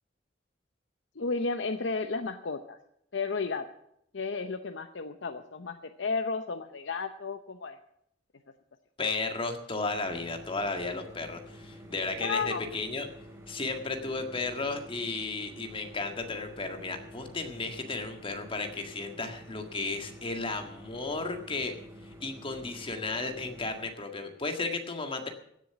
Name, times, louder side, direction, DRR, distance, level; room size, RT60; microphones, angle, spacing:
voice 1, 1.2-2.8 3.1-3.7 4.1-7.8 12.2-12.6, left 4 dB, 75° left, 8 dB, 0.7 m, -33 dB
voice 2, 9.0-13.1 13.5-21.7 22.0-25.3, left 3 dB, 30° left, 5 dB, 1.8 m, -34 dB
sound 1, 9.9-23.9, equal, 15° right, 3.3 m, -49 dB
16.0 x 7.3 x 7.9 m, 0.74 s
head